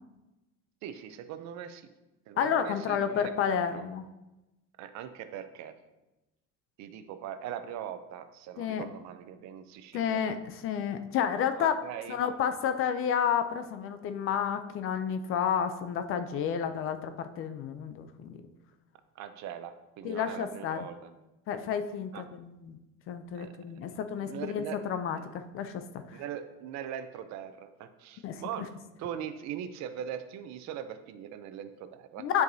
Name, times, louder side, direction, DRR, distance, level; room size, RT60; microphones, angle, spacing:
voice 1, 0.8-1.9 2.3-3.9 4.8-5.7 6.8-10.2 11.5-12.2 19.2-21.1 22.1-22.2 23.3-23.5 24.2-24.8 25.2-25.3 26.1-28.7 29.0-32.3, right 9 dB, 60° right, 10 dB, 0.6 m, -41 dB
voice 2, 2.4-4.0 8.6-8.8 9.9-11.7 12.1-18.4 20.0-20.9 21.5-22.8 23.1-25.8 26.1-26.2 28.2-28.4 32.2-32.4, left 8 dB, 45° left, 10 dB, 0.4 m, -30 dB
10.5 x 4.7 x 2.7 m, 1.0 s
cardioid pair, 170°, 32 cm